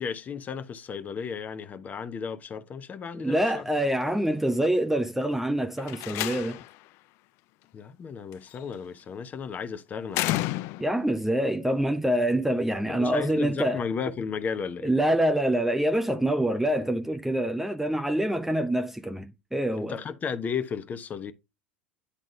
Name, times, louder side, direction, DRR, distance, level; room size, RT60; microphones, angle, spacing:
voice 1, 0.0-3.6 7.7-10.5 12.9-14.9 19.8-21.3, left 6 dB, 25° left, 1.0 m, -34 dB
voice 2, 3.1-6.6 10.8-13.8 14.8-19.9, right 1 dB, 5° right, 0.7 m, -26 dB
Slam, 5.8-6.8 8.3-8.8 10.1-11.1, left 17 dB, 45° left, 0.4 m, -31 dB
9.9 x 3.8 x 3.8 m
figure-of-eight pair, 75°, 6 cm